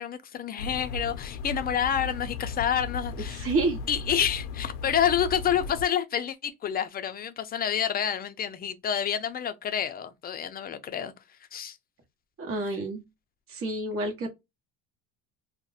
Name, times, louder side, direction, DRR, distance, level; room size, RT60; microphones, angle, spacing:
voice 1, 0.0-3.5 3.9-11.1 11.5-11.8, left 9 dB, 30° left, 0.4 m, -28 dB
sound 1, 0.6-5.9, left 4 dB, 85° left, 0.5 m, -36 dB
voice 2, 3.3-3.8 12.4-13.0 13.5-14.3, right 2 dB, 40° right, 1.1 m, -29 dB
2.5 x 2.1 x 3.9 m
cardioid pair, 120°, 34 cm